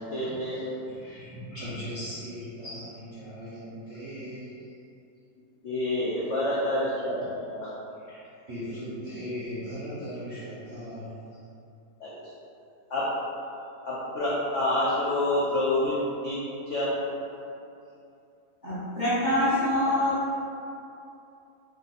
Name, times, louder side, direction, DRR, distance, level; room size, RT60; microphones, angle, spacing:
voice 1, 0.0-0.6 1.1-1.2 2.6-2.8 5.6-7.8 12.0-12.3 12.9-13.0 13.9-16.9, left 1 dB, 70° left, -8 dB, 0.7 m, -28 dB
voice 2, 0.6-4.6 8.0-11.1, equal, 55° right, -11 dB, 0.8 m, -38 dB
voice 3, 18.6-20.3, left 1 dB, 30° left, -12 dB, 1.0 m, -25 dB
3.3 x 2.6 x 4.0 m, 2.7 s
omnidirectional pair, 2.0 m